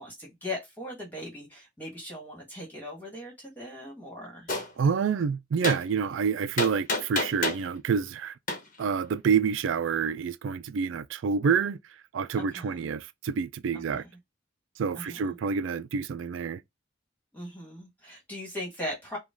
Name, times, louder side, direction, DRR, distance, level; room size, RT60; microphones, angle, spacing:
voice 1, 0.0-4.5 12.5-12.8 13.9-14.1 14.9-15.3 17.3-19.2, left 1 dB, 10° left, 1.7 m, -39 dB
Gunshot gunfire, 4.5-4.7 5.6-5.8 6.6-7.7 8.5-8.6, left 2 dB, 45° left, 1.1 m, -28 dB
voice 2, 4.8-8.3 8.8-11.8 12.1-14.0 14.8-16.6, right 6 dB, 80° right, 0.4 m, -28 dB
5.0 x 2.4 x 3.6 m
head